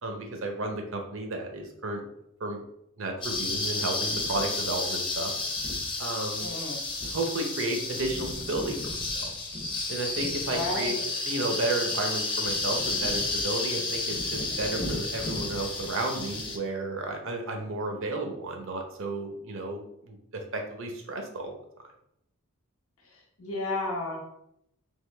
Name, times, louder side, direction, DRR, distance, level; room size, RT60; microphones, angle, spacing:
voice 1, 0.0-2.0 2.4-2.6 3.0-5.3 6.0-6.6 7.0-9.0 9.9-11.0 11.3-21.5, right 2 dB, 60° right, 3 dB, 0.7 m, -32 dB
sound 1, 3.2-16.6, left 3 dB, 25° left, 0.6 m, -31 dB
voice 2, 6.4-6.8 10.5-11.1 23.1-24.2, left 2 dB, 80° left, 0 dB, 1.1 m, -33 dB
3.7 x 2.8 x 3.3 m, 0.77 s
head